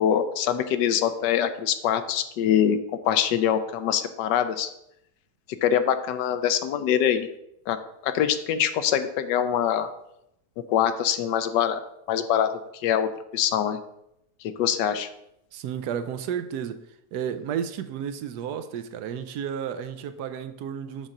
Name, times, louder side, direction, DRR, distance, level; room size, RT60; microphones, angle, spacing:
voice 1, 0.0-2.8 3.0-4.7 5.6-7.3 7.7-7.8 8.0-9.9 10.7-11.8 12.1-12.5 12.8-13.8 14.4-15.1, left 9 dB, 80° left, 1.3 m, -24 dB
voice 2, 15.5-21.1, right 8 dB, 75° right, 1.1 m, -32 dB
7.2 x 3.8 x 6.5 m
omnidirectional pair, 1.9 m